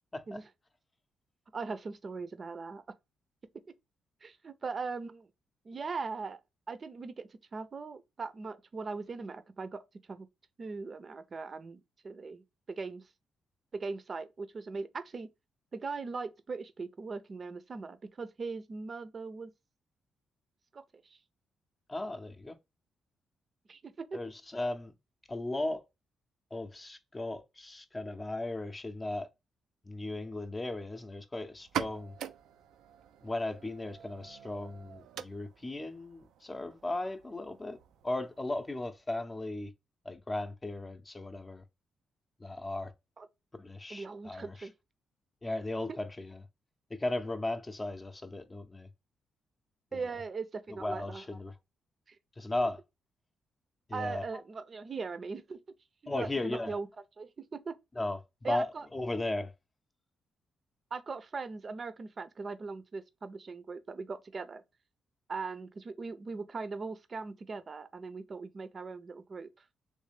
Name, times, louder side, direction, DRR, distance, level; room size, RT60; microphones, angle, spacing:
voice 1, 1.5-2.8 3.5-3.6 4.2-5.3 5.6-6.4 6.7-9.8 10.1-10.3 10.6-13.1 13.7-15.3 15.7-19.5 20.7-20.8 21.1-21.2 23.7-24.2 43.2-43.3 43.9-44.7 49.9-51.2 52.1-52.2 53.9-55.6 56.2-56.9 57.2-57.7 58.4-58.9 60.9-64.6 65.3-69.5, right 4 dB, 40° right, 0.6 m, -40 dB
voice 2, 21.9-22.6 24.1-24.9 25.3-25.8 26.5-29.3 29.8-32.2 33.2-37.8 38.0-39.7 40.0-41.6 42.4-42.9 43.6-44.7 45.4-46.4 46.9-48.9 49.9-50.1 50.8-51.5 52.4-52.8 53.9-54.2 56.1-56.7 58.0-59.5, left 2 dB, 20° left, 0.6 m, -36 dB
sound 1, 31.6-39.0, right 10 dB, 85° right, 0.3 m, -44 dB
3.3 x 3.1 x 3.3 m
cardioid pair, 80°, 0 cm